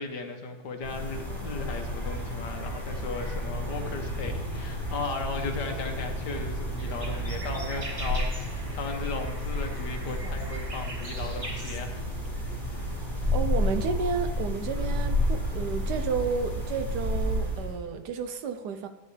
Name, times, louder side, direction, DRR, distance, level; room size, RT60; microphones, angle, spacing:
voice 1, 0.0-12.0, left 3 dB, 65° left, 4 dB, 1.7 m, -36 dB
sound 1, 0.8-17.8, left 1 dB, ahead, 3.5 m, -31 dB
sound 2, 6.8-11.8, right 2 dB, 25° right, 0.8 m, -42 dB
voice 2, 13.3-18.9, right 5 dB, 70° right, 9 dB, 1.2 m, -31 dB
13.5 x 9.4 x 3.3 m, 1.3 s
omnidirectional pair, 1.9 m